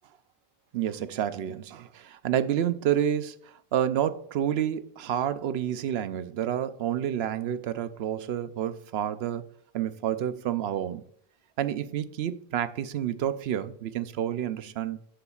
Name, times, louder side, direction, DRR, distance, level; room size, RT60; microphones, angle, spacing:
voice 1, 0.7-9.5 9.7-11.0 11.6-15.0, right 10 dB, 90° right, 0.8 m, -29 dB
11.0 x 7.0 x 2.4 m
omnidirectional pair, 1.0 m